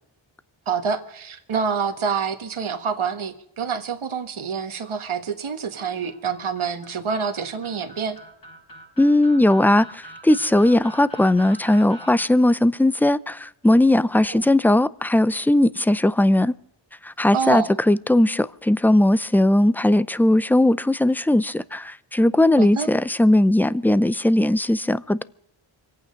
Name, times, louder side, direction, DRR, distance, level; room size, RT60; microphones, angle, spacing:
voice 1, 0.7-8.2 14.3-14.4 17.3-17.7 22.6-22.9, right 6 dB, 75° right, 1.7 m, -27 dB
sound 1, 5.7-12.2, right 1 dB, 45° left, 5.2 m, -44 dB
voice 2, 9.0-16.5 17.0-25.2, left 1 dB, 5° left, 0.6 m, -18 dB
26.0 x 9.0 x 5.3 m
cardioid pair, 60°, 49 cm